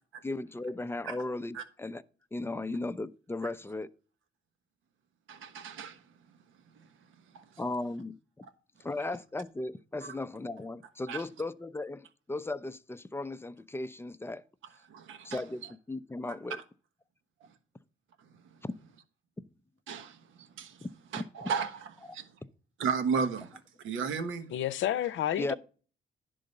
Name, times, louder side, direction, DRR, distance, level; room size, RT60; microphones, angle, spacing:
voice 1, 0.2-2.0 2.3-3.9 7.6-8.2 8.8-14.4 15.2-16.6 18.6-18.7 20.8-20.9 21.2-21.3 25.4-25.5, left 2 dB, 10° left, 0.5 m, -36 dB
voice 2, 5.3-6.0 6.8-6.9 7.3-7.4 11.1-11.2 14.9-15.7 16.5-16.6 19.9-20.9 21.1-22.3 22.8-24.5, right 6 dB, 80° right, 1.2 m, -34 dB
voice 3, 24.5-25.5, left 11 dB, 75° left, 0.7 m, -30 dB
10.5 x 3.9 x 6.4 m
cardioid pair, 90°, 20 cm